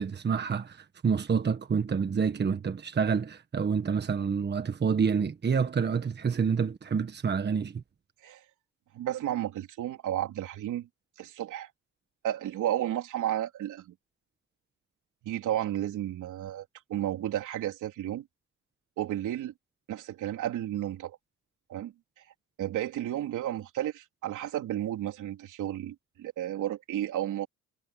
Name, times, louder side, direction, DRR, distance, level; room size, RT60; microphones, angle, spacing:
voice 1, 0.0-7.8, right 6 dB, 35° right, 1.5 m, -28 dB
voice 2, 8.9-10.9 11.2-11.7 12.2-13.9 15.2-18.3 19.0-19.5 19.9-21.2 21.7-22.2 22.6-27.5, right 12 dB, 80° right, 3.7 m, -32 dB
cardioid pair, 90°, 30 cm